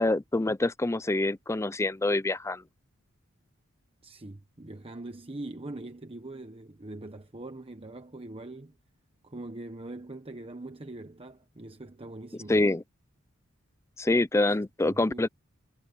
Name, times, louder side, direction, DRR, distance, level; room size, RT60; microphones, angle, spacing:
voice 1, 0.0-2.6 12.5-12.8 14.0-15.3, left 2 dB, 15° left, 0.5 m, -26 dB
voice 2, 4.0-8.8 9.2-12.6 14.5-15.3, right 2 dB, 25° right, 1.1 m, -42 dB
head